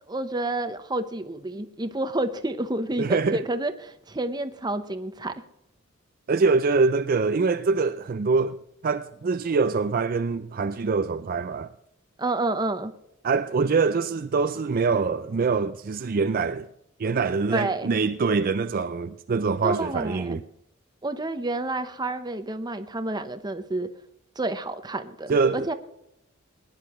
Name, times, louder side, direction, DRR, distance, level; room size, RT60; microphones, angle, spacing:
voice 1, 0.1-5.3 12.2-12.9 17.5-17.9 19.6-20.4 21.0-23.9 24.4-25.7, right 2 dB, 20° right, 0.8 m, -29 dB
voice 2, 3.0-3.4 6.3-8.6 8.8-11.7 13.2-16.7 17.0-20.4 25.3-25.7, right 4 dB, 45° right, 0.4 m, -24 dB
20.5 x 10.5 x 3.1 m
head